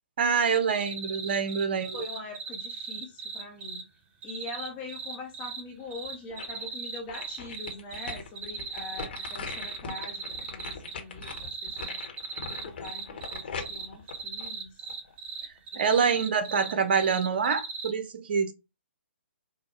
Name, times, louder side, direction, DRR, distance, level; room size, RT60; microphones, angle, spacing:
voice 1, 0.2-2.0 15.7-18.5, right 6 dB, 50° right, 0.8 m, -26 dB
sound 1, 0.7-3.8 4.2-5.6 5.9-10.9 11.2-17.9, right 5 dB, 20° right, 0.7 m, -38 dB
voice 2, 1.9-3.8 4.2-10.2 10.5-12.0 12.5-14.8 15.7-16.1, left 2 dB, 20° left, 0.8 m, -43 dB
sound 2, 5.8-6.7 7.1-15.1 15.6-15.7, left 5 dB, 55° left, 1.1 m, -41 dB
4.9 x 2.2 x 3.0 m
figure-of-eight pair, 130°, 7 cm